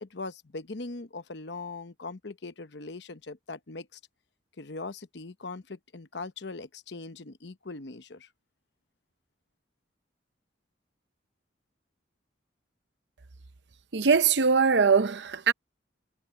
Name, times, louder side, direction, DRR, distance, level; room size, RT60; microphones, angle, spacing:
voice 1, 0.0-4.0 4.6-8.3, left 3 dB, 65° left, 0.9 m, -40 dB
voice 2, 13.9-15.5, right 5 dB, 65° right, 0.7 m, -22 dB
head